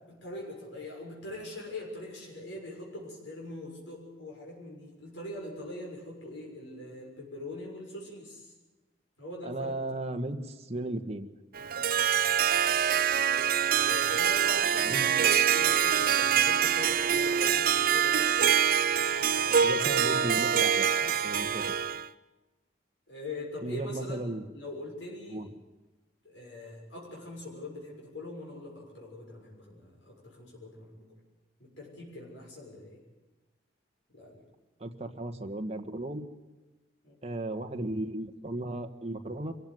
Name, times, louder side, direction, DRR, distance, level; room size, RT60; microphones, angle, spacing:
voice 1, 0.0-8.5 9.2-9.9 13.7-18.5 19.3-19.8 23.1-24.2 24.5-25.4 26.2-31.1 31.6-33.0 34.1-34.4 37.0-37.2, left 1 dB, 85° left, -2 dB, 6.8 m, -42 dB
voice 2, 9.4-11.3 14.8-15.1 19.6-21.8 23.6-24.4 25.3-25.5 34.8-36.3 37.2-39.5, right 1 dB, 35° right, 4 dB, 1.7 m, -35 dB
Harp, 11.5-22.1, right 8 dB, 50° right, 0.7 m, -25 dB
24.5 x 15.5 x 9.6 m, 1.2 s
head